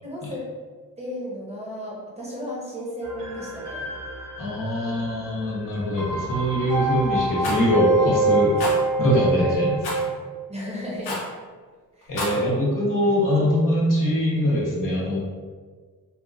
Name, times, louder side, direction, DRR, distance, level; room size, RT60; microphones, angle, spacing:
voice 1, 0.0-0.5 1.0-3.9 10.5-11.2 12.0-12.2, left 1 dB, 15° right, -5 dB, 0.8 m, -34 dB
sound 1, 3.0-10.1, right 3 dB, 55° right, 1.0 m, -26 dB
voice 2, 4.4-8.6 9.0-10.1 12.1-15.2, equal, 60° left, -5 dB, 0.9 m, -23 dB
Rattle, 7.4-7.6 8.6-8.8 9.8-10.0 11.0-11.3 12.0-12.4, left 2 dB, 85° left, 0.7 m, -29 dB
2.9 x 2.4 x 2.3 m, 1.5 s
cardioid pair, 75°, 37 cm